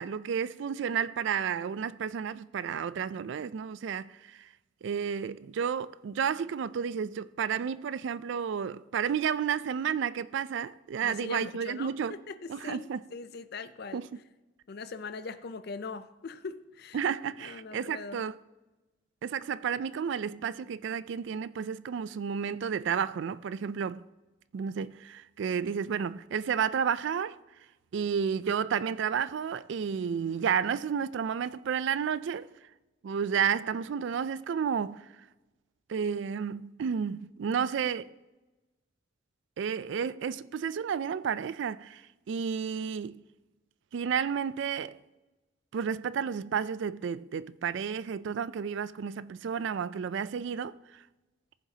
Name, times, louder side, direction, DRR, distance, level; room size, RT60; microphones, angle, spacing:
voice 1, 0.0-4.5 4.8-12.1 12.5-13.0 13.9-14.0 16.9-18.3 19.2-24.0 24.5-27.4 27.9-32.5 33.0-35.0 35.9-38.1 39.6-42.0 42.3-43.2 43.9-45.0 45.7-50.7, right 7 dB, 60° right, 0.3 m, -31 dB
voice 2, 11.0-14.0 14.7-18.3, left 4 dB, 50° left, 0.5 m, -41 dB
14.5 x 7.2 x 2.8 m
head